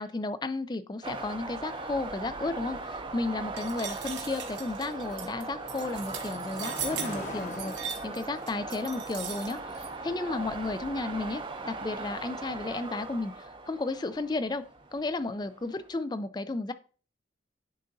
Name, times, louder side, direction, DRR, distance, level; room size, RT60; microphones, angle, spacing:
voice 1, 0.0-14.6 14.9-16.7, left 2 dB, 20° left, 13 dB, 0.3 m, -33 dB
sound 1, 1.0-15.9, right 3 dB, 25° right, 0.6 m, -39 dB
sound 2, 1.4-14.9, left 2 dB, 40° left, 1.0 m, -48 dB
sound 3, 3.6-9.9, right 8 dB, 75° right, 0.9 m, -39 dB
10.5 x 3.8 x 2.6 m, 0.39 s
head